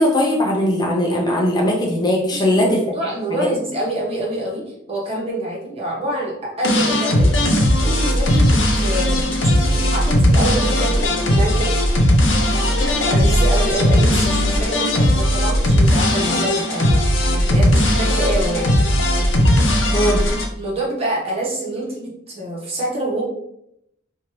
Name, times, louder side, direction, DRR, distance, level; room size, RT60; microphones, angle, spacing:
voice 1, 0.0-2.8 19.9-20.2, left 1 dB, 20° left, -2 dB, 0.5 m, -19 dB
voice 2, 2.3-7.3 7.8-11.8 12.7-17.0 17.5-18.7 20.6-23.3, right 1 dB, 30° right, -4 dB, 1.1 m, -26 dB
sound 1, 6.6-20.4, equal, 75° left, 0.7 m, -17 dB
4.3 x 2.6 x 3.0 m, 0.79 s
head